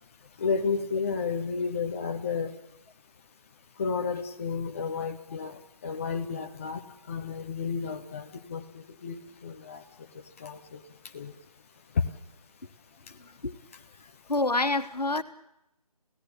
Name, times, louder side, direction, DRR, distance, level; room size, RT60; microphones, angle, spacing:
voice 1, 0.4-2.5 3.8-6.8 7.1-9.2 9.4-9.8 10.4-10.8 11.1-11.3, left 5 dB, 20° left, 5 dB, 0.9 m, -32 dB
voice 2, 13.2-13.5 14.3-15.2, left 2 dB, 85° left, 9 dB, 1.7 m, -27 dB
27.0 x 16.5 x 8.8 m, 0.89 s
figure-of-eight pair, 160°, 20 cm